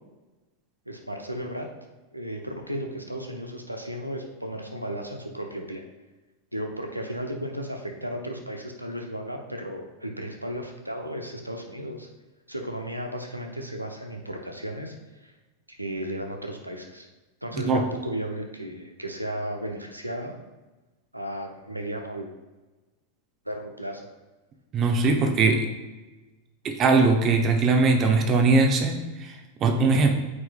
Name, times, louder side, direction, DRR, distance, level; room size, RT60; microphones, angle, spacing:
voice 1, 0.9-1.7 2.1-5.8 6.5-12.1 12.5-15.3 15.7-17.1 17.4-20.4 21.1-22.3 23.4-24.1, equal, 90° right, 3 dB, 0.8 m, -34 dB
voice 2, 24.7-25.7 26.6-30.1, right 3 dB, 30° right, 3 dB, 0.8 m, -21 dB
8.3 x 4.7 x 2.4 m, 1.1 s
figure-of-eight pair, 90°, 0 cm